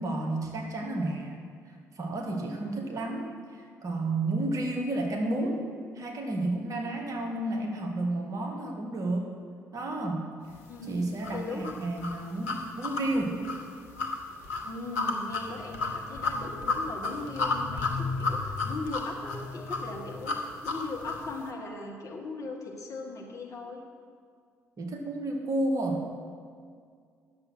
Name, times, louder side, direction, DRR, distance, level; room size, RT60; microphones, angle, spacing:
voice 1, 0.0-1.4 1.7-5.6 5.9-9.3 9.7-10.3 10.9-13.4 24.8-26.0, right 2 dB, 45° right, 1 dB, 1.7 m, -31 dB
voice 2, 10.7-11.0 11.3-11.7 14.6-20.4 20.6-23.8, left 3 dB, 40° left, 0 dB, 1.8 m, -39 dB
sound 1, 11.2-21.3, left 3 dB, 75° left, 0.9 m, -32 dB
9.7 x 6.9 x 6.4 m, 2.1 s
figure-of-eight pair, 45°, 8 cm